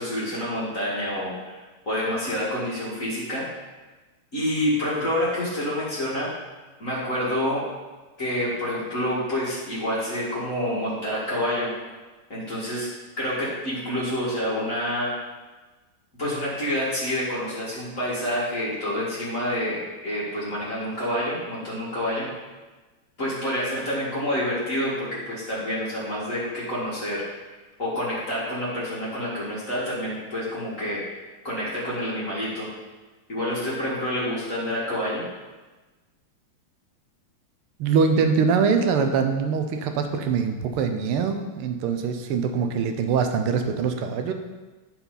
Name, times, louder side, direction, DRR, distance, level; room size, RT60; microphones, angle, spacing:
voice 1, 0.0-1.6 1.9-3.5 4.3-6.3 6.8-7.6 8.2-11.7 12.3-12.9 13.2-15.2 16.2-22.3 23.2-27.2 27.8-31.2 31.4-32.7 33.3-35.3, left 1 dB, 40° left, -8 dB, 2.1 m, -28 dB
voice 2, 37.8-44.3, right 5 dB, 90° right, 6 dB, 1.6 m, -23 dB
10.5 x 4.4 x 4.0 m, 1.2 s
omnidirectional pair, 2.3 m